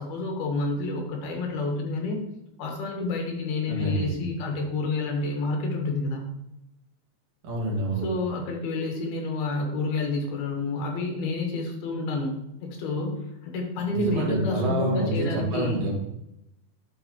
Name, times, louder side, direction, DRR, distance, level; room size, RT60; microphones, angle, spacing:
voice 1, 0.0-2.2 2.6-6.2 8.0-15.8, left 2 dB, 65° left, 1 dB, 3.2 m, -29 dB
voice 2, 3.7-4.2 7.4-8.1 13.9-15.9, right 1 dB, 45° right, -3 dB, 2.6 m, -27 dB
9.9 x 6.8 x 3.2 m, 0.87 s
omnidirectional pair, 5.2 m